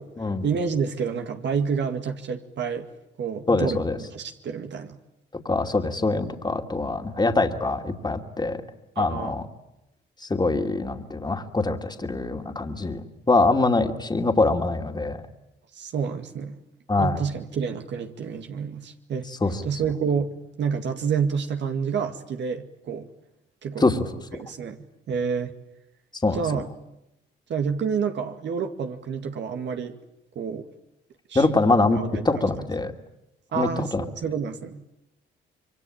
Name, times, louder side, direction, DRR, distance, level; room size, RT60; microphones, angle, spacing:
voice 1, 0.4-2.9 3.2-5.0 9.0-9.3 15.7-16.6 17.0-19.3 19.6-23.1 23.6-23.9 24.3-24.8 25.1-25.5 26.3-26.7 27.5-30.0 30.4-30.7 31.3-31.5 31.9-32.5 33.5-34.8, right 6 dB, 65° right, 5 dB, 2.1 m, -29 dB
voice 2, 3.5-4.0 5.4-8.6 9.0-9.5 10.2-15.2 16.9-17.2 19.4-19.6 23.8-24.1 26.2-26.4 31.3-32.9 33.5-34.0, left 3 dB, 20° left, 5 dB, 2.6 m, -24 dB
26.5 x 23.5 x 8.8 m, 0.86 s
cardioid pair, 90°, 20 cm